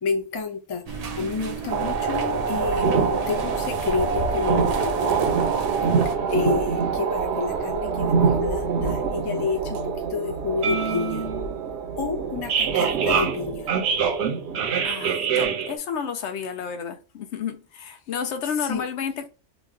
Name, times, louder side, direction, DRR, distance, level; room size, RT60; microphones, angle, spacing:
voice 1, 0.0-5.5 6.0-11.2 12.0-13.7 18.6-18.8, left 5 dB, 30° left, 0.4 m, -30 dB
sound 1, 0.9-6.2, right 3 dB, 85° right, 0.3 m, -33 dB
sound 2, 1.7-15.8, right 6 dB, 70° right, 0.8 m, -24 dB
voice 2, 14.8-19.3, left 7 dB, 75° left, 0.8 m, -31 dB
3.0 x 2.2 x 3.5 m
omnidirectional pair, 1.2 m